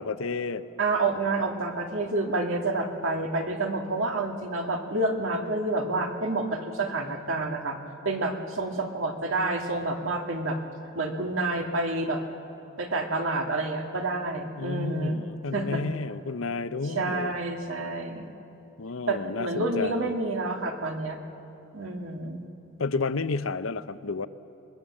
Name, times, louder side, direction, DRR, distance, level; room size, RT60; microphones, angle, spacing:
voice 1, 0.0-0.6 14.6-17.3 18.8-20.1 22.8-24.3, left 4 dB, 90° left, 12 dB, 0.8 m, -31 dB
voice 2, 0.8-7.8 8.0-10.6 11.0-12.2 12.8-15.2 15.5-15.8 16.8-18.3 19.1-21.2 21.7-22.4, right 2 dB, 80° right, 3 dB, 2.2 m, -28 dB
27.5 x 20.5 x 7.6 m, 2.9 s
head